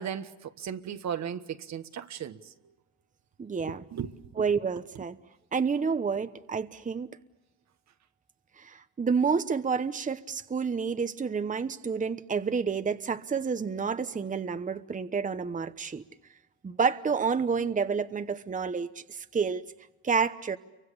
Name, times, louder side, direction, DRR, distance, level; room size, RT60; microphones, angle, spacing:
voice 1, 0.0-2.4 3.7-4.1, right 8 dB, 65° right, 1.3 m, -36 dB
voice 2, 3.4-3.8 4.4-5.2 5.5-7.1 8.6-16.0 16.6-19.7 20.0-20.6, right 5 dB, 25° right, 1.0 m, -29 dB
29.5 x 24.5 x 6.9 m
cardioid pair, 90°, 30 cm